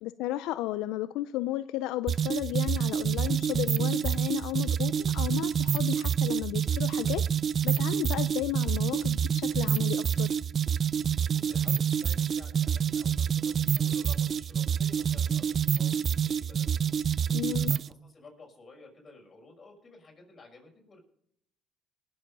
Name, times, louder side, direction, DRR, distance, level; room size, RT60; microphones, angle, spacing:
voice 1, 0.0-7.2 7.6-10.4 17.3-17.7, left 15 dB, 85° left, 15 dB, 0.4 m, -33 dB
sound 1, 2.1-17.9, right 8 dB, 50° right, 0.4 m, -27 dB
voice 2, 11.3-17.0 17.6-21.0, left 3 dB, 35° left, 1 dB, 6.1 m, -53 dB
19.0 x 7.9 x 5.4 m, 0.71 s
supercardioid pair, 75°, 0 cm